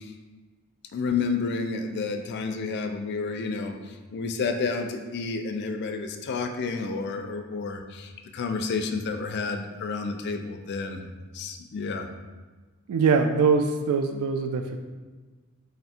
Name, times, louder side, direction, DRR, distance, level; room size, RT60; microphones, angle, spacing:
voice 1, 0.9-3.7 4.1-11.0 11.3-12.0, left 4 dB, 50° left, 5 dB, 0.3 m, -30 dB
voice 2, 12.9-14.8, right 5 dB, 85° right, 8 dB, 0.3 m, -23 dB
3.4 x 2.5 x 4.2 m, 1.3 s
head